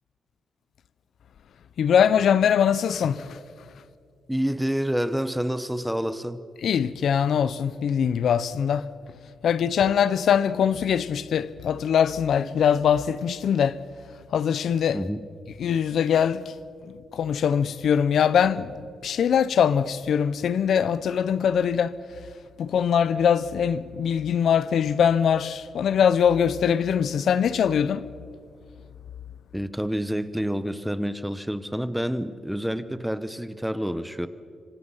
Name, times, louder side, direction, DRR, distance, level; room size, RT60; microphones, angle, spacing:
voice 1, 1.8-3.4 6.6-8.9 9.4-13.8 14.3-15.0 15.6-16.6 17.1-22.0 22.6-28.1, left 8 dB, 70° left, 0.7 m, -22 dB
voice 2, 4.3-6.4 14.9-15.2 29.5-34.3, equal, 5° right, 0.9 m, -28 dB
26.5 x 25.0 x 5.6 m
cardioid pair, 115°, 0 cm